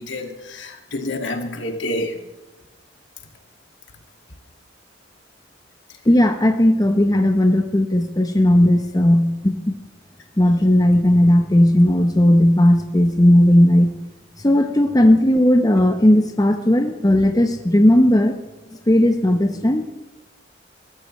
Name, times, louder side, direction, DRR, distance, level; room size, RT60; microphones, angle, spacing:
voice 1, 0.0-2.2, left 1 dB, 75° left, 3 dB, 2.3 m, -28 dB
voice 2, 6.1-9.7 10.4-13.9 14.4-18.4 18.9-19.9, left 1 dB, 20° left, 5 dB, 0.9 m, -16 dB
21.5 x 14.0 x 3.3 m, 1.1 s
head